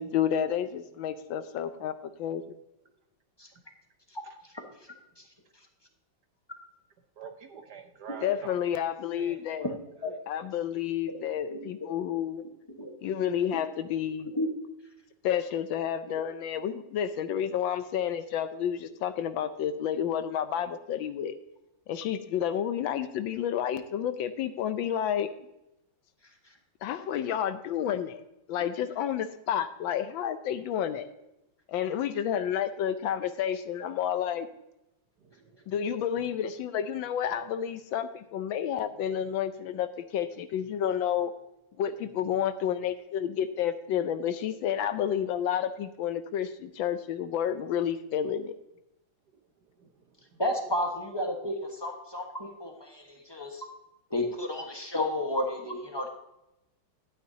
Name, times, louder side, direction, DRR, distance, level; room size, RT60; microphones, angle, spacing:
voice 1, 0.0-1.9 2.2-2.4 8.2-9.7 10.3-12.4 13.0-14.3 15.2-21.3 21.9-25.3 26.8-28.2 28.5-31.1 31.7-34.5 35.7-41.3 41.8-48.5, left 9 dB, 75° left, 11 dB, 1.3 m, -30 dB
voice 2, 7.2-8.7 9.2-9.4 10.0-10.2 35.4-35.6 35.8-36.0, right 7 dB, 65° right, 6 dB, 1.1 m, -44 dB
voice 3, 50.4-53.7 54.1-56.1, left 1 dB, 15° left, 2 dB, 1.0 m, -32 dB
11.5 x 9.4 x 2.7 m, 0.89 s
omnidirectional pair, 2.3 m